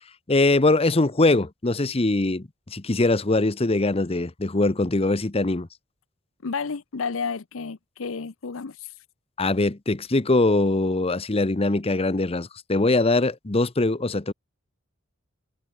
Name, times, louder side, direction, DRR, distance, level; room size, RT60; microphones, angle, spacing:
voice 1, 0.3-5.7 9.4-14.3, left 2 dB, 30° left, 0.9 m, -22 dB
voice 2, 6.4-8.9, left 5 dB, 85° left, 0.7 m, -31 dB
head